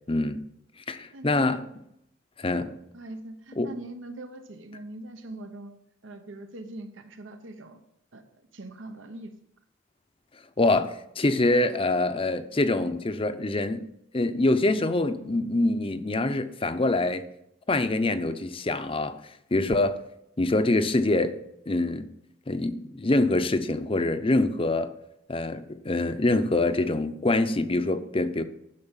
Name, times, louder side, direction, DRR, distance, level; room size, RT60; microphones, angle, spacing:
voice 1, 0.1-0.4 0.9-1.6 2.4-2.7 3.6-3.7 10.6-13.9 14.1-17.3 17.7-19.2 19.5-20.0 20.4-21.4 21.7-22.1 22.5-24.9 25.3-28.4, left 2 dB, 30° left, 0.7 m, -25 dB
voice 2, 1.1-1.5 2.9-5.7 6.0-7.8 8.1-8.3 8.5-9.4, right 1 dB, 85° right, 1.1 m, -42 dB
11.0 x 6.1 x 7.3 m
head